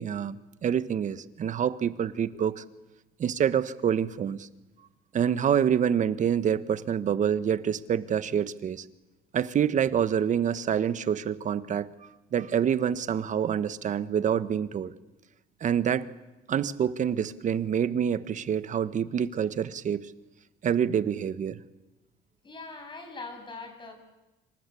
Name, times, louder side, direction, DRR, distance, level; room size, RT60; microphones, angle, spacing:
voice 1, 0.0-2.6 3.2-4.5 5.1-8.8 9.3-11.9 12.3-14.9 15.6-16.1 16.5-20.1 20.6-21.6, right 8 dB, 45° right, 14 dB, 1.4 m, -27 dB
voice 2, 22.4-23.9, left 3 dB, 30° left, 5 dB, 7.9 m, -41 dB
26.5 x 26.5 x 8.5 m, 1.1 s
cardioid pair, 110°, 17 cm